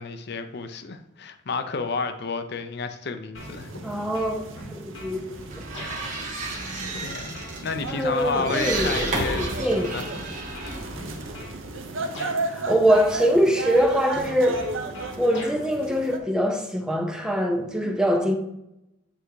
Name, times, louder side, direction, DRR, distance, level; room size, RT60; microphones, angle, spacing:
voice 1, 0.0-3.7 7.0-10.1, left 4 dB, 55° left, 0.6 m, -31 dB
sound 1, 3.3-3.8 4.1-5.2 5.7-5.9 6.5-9.2 9.7-10.2 10.5-11.6 12.1-12.3 12.9-13.4 13.7-15.6, left 2 dB, 75° left, 1.9 m, -40 dB
sound 2, 3.4-16.2, right 3 dB, 85° right, 0.9 m, -35 dB
voice 2, 3.8-4.3 4.6-5.6 7.9-10.0 12.4-14.7 15.2-18.3, equal, 5° right, 0.7 m, -23 dB
sound 3, 5.3-11.8, right 2 dB, 40° right, 1.6 m, -33 dB
8.8 x 3.5 x 4.8 m
head